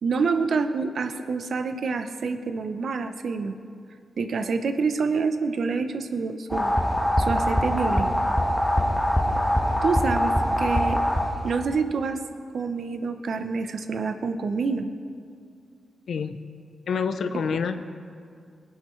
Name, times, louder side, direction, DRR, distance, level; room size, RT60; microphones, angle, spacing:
voice 1, 0.0-3.6 4.2-6.7 7.2-8.2 9.8-11.0 11.4-12.2 12.5-14.9, right 4 dB, 70° right, 8 dB, 0.7 m, -27 dB
sound 1, 6.5-11.6, equal, ahead, 1.3 m, -23 dB
voice 2, 16.1-16.4 16.9-17.8, left 5 dB, 75° left, 10 dB, 0.5 m, -27 dB
18.0 x 8.2 x 3.2 m, 2.3 s
supercardioid pair, 50°, 0 cm